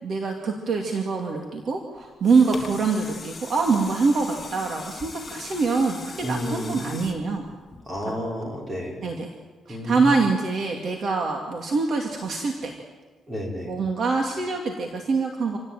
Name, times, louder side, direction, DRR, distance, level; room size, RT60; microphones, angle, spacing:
voice 1, 0.0-7.4 8.1-8.2 9.0-9.3 9.7-12.8 13.7-15.6, right 4 dB, 50° right, 2 dB, 2.6 m, -24 dB
sound 1, 1.9-8.3 8.8-8.9, left 3 dB, 20° left, 2.7 m, -40 dB
voice 2, 6.2-6.8 7.9-9.0 9.7-10.1 13.3-13.7, equal, 20° right, -1 dB, 5.9 m, -31 dB
27.0 x 17.5 x 9.3 m, 1.3 s
cardioid pair, 160°, 0 cm